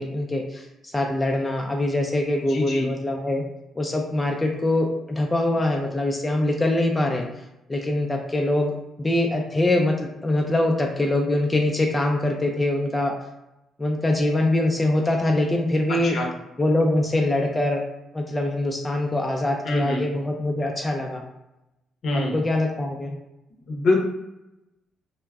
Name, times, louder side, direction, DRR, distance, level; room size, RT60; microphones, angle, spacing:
voice 1, 0.0-3.4 3.8-7.3 7.7-13.1 13.8-16.2 16.6-17.8 18.1-21.2 22.1-23.2, left 1 dB, 15° left, 1 dB, 0.4 m, -23 dB
voice 2, 2.5-2.9 15.9-16.3 19.6-20.0 22.0-22.3 23.7-24.0, left 2 dB, 60° left, 0 dB, 0.7 m, -24 dB
2.3 x 2.1 x 3.4 m, 0.92 s
cardioid pair, 90°, 0 cm